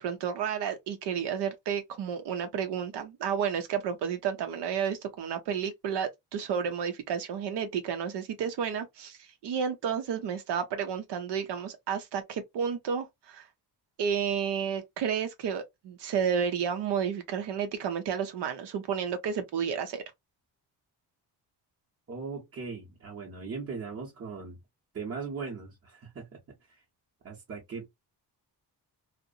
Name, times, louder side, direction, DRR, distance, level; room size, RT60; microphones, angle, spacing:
voice 1, 0.0-13.5 14.0-20.0, right 7 dB, 80° right, 0.6 m, -31 dB
voice 2, 22.1-24.6 24.9-26.3 27.2-27.9, right 5 dB, 35° right, 0.7 m, -39 dB
2.7 x 2.0 x 2.3 m
wide cardioid pair, 155°, 41 cm